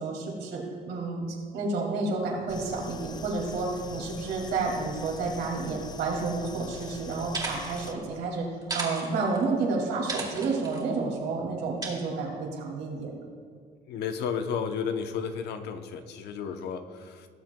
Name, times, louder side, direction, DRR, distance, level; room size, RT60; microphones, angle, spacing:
voice 1, 0.0-8.5 8.7-13.1, right 3 dB, 75° right, 0 dB, 2.3 m, -30 dB
sound 1, 2.5-7.9, left 4 dB, 25° left, 0.4 m, -44 dB
sound 2, 6.7-6.9 7.2-7.9 8.6-9.5 10.1-10.8 11.8-11.9, right 3 dB, 25° right, 2.3 m, -35 dB
voice 2, 13.9-17.3, left 6 dB, 75° left, 7 dB, 0.8 m, -33 dB
18.5 x 7.5 x 2.2 m, 2.2 s
cardioid pair, 110°, 17 cm